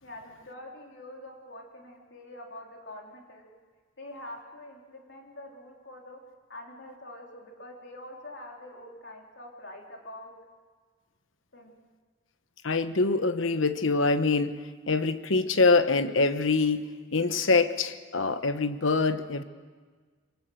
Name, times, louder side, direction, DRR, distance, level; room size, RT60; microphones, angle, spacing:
voice 1, 0.0-3.5 4.0-6.2 6.5-10.3 11.5-11.7, left 1 dB, 65° left, 0 dB, 3.7 m, -45 dB
voice 2, 12.6-19.4, left 3 dB, 80° left, 11 dB, 1.1 m, -25 dB
24.0 x 18.0 x 7.8 m, 1.5 s
head